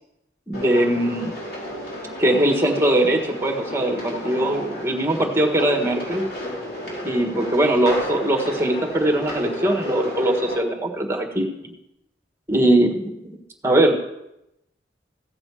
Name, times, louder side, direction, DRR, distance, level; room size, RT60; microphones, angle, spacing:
sound 1, 0.5-10.6, equal, 55° left, 3.7 m, -32 dB
voice 1, 0.5-1.3 2.2-6.2 7.0-11.7 12.5-13.4 13.6-13.9, right 1 dB, 15° right, 1 dB, 1.5 m, -21 dB
15.5 x 6.4 x 4.9 m, 0.88 s
head